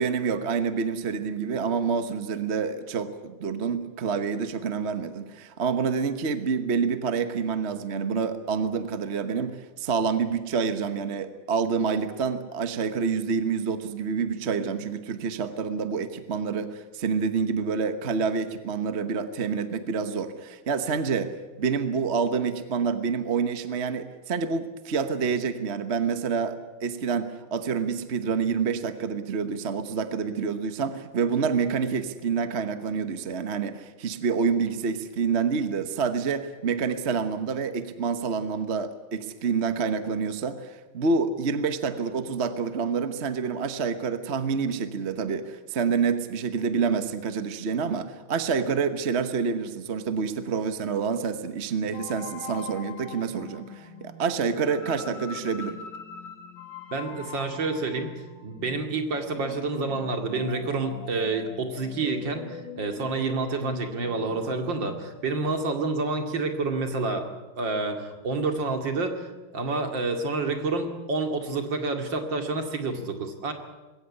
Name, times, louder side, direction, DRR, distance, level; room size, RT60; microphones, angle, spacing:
voice 1, 0.0-55.8, right 5 dB, 40° right, 10 dB, 1.2 m, -27 dB
sound 1, 51.9-64.7, left 6 dB, 65° left, 2.5 m, -43 dB
voice 2, 56.9-58.1 58.4-67.3 67.6-73.5, right 3 dB, 70° right, 5 dB, 3.0 m, -28 dB
21.5 x 17.0 x 9.9 m, 1.2 s
omnidirectional pair, 2.1 m